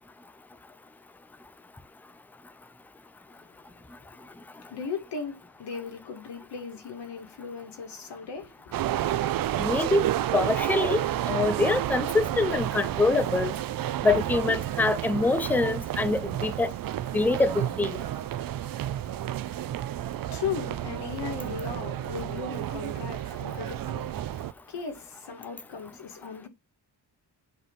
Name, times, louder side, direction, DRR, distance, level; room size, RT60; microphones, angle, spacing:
voice 1, 4.7-9.0 20.0-24.4 24.7-26.5, left 6 dB, 70° left, 2.6 m, -37 dB
sound 1, 8.7-24.5, right 12 dB, 55° right, 0.5 m, -31 dB
voice 2, 9.6-10.1 10.3-13.6 14.0-16.7 17.1-18.0, left 3 dB, 5° left, 0.5 m, -25 dB
7.9 x 3.3 x 5.8 m
wide cardioid pair, 170°, 42 cm